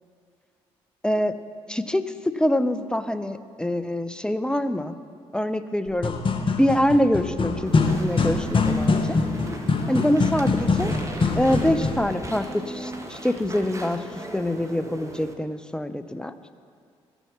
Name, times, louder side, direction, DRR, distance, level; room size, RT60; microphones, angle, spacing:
voice 1, 1.0-1.4 1.7-5.0 5.3-6.1 6.6-9.2 9.9-10.9 11.3-14.0 14.3-16.3, left 1 dB, 5° left, 11 dB, 0.5 m, -25 dB
sound 1, 5.9-12.1, left 3 dB, 35° left, 1.1 m, -24 dB
Walk footsteps / Chatter / Squeak, 7.7-15.3, right 1 dB, 20° right, 1.3 m, -37 dB
13.0 x 7.0 x 5.7 m, 2.3 s
figure-of-eight pair, 40°, 14 cm